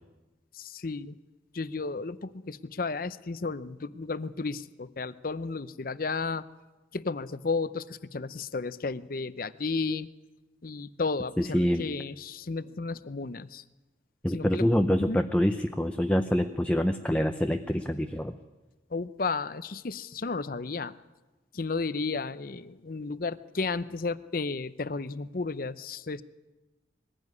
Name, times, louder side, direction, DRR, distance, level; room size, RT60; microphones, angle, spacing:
voice 1, 0.5-1.2 1.5-6.4 6.9-10.1 10.6-13.6 14.3-14.6 15.0-15.2 18.9-20.9 21.5-26.2, left 4 dB, 50° left, 15 dB, 0.7 m, -33 dB
voice 2, 11.4-11.9 14.2-18.3, equal, 5° left, 6 dB, 0.7 m, -26 dB
21.0 x 15.5 x 9.6 m, 1.1 s
head